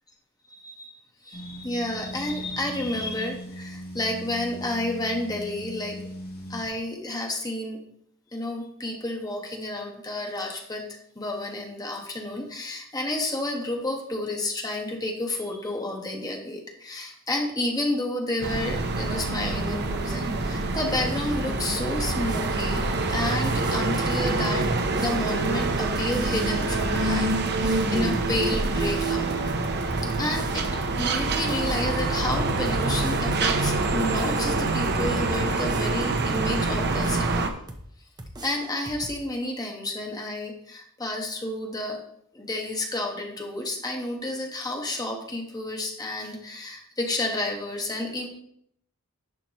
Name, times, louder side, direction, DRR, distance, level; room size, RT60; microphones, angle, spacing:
voice 1, 0.5-1.0 1.2-6.0 6.5-7.8 8.3-10.9 11.1-22.8 23.1-29.3 30.0-30.6 31.0-37.5 38.4-42.0 42.3-48.3, left 1 dB, 15° left, 1 dB, 1.3 m, -30 dB
sound 1, 1.3-6.7, equal, 45° left, 2.3 m, -39 dB
sound 2, 18.4-37.5, right 3 dB, 50° right, 0.8 m, -26 dB
sound 3, 22.3-36.5 37.0-37.9 38.2-39.2, right 1 dB, 20° right, 0.8 m, -43 dB
10.5 x 5.9 x 3.1 m, 0.68 s
head